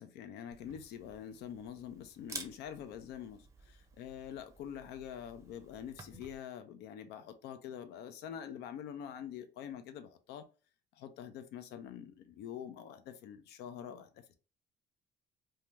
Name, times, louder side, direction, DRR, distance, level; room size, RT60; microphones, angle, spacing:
voice 1, 0.0-10.5 11.0-14.3, left 9 dB, 80° left, 0.6 m, -46 dB
Camera, 0.5-6.4, right 3 dB, 20° right, 0.6 m, -52 dB
2.7 x 2.3 x 3.2 m
cardioid pair, 110°, 17 cm